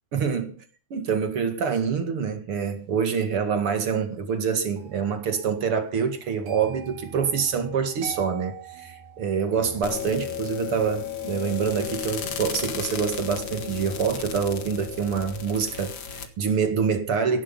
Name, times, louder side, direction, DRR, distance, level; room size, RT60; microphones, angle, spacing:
voice 1, 0.1-0.6 0.9-17.4, right 6 dB, 45° right, 2.2 m, -26 dB
sound 1, 4.7-15.7 16.0-16.4, right 8 dB, 80° right, 4.9 m, -46 dB
sound 2, 9.8-16.3, left 8 dB, 45° left, 1.8 m, -34 dB
17.0 x 11.0 x 5.5 m
omnidirectional pair, 4.3 m